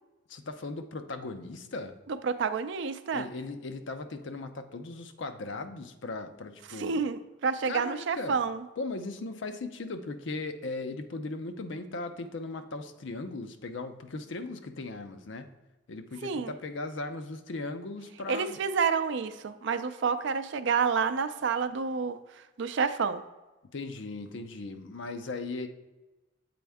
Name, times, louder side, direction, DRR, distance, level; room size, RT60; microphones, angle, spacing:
voice 1, 0.3-2.0 3.1-7.0 7.6-8.4 8.8-15.5 15.9-18.6 23.7-25.7, left 3 dB, 70° left, 8 dB, 0.6 m, -38 dB
voice 2, 2.1-3.3 6.7-8.6 16.2-16.5 18.3-22.2 22.6-23.2, right 5 dB, 70° right, 11 dB, 0.4 m, -29 dB
7.7 x 4.2 x 3.5 m, 1.1 s
head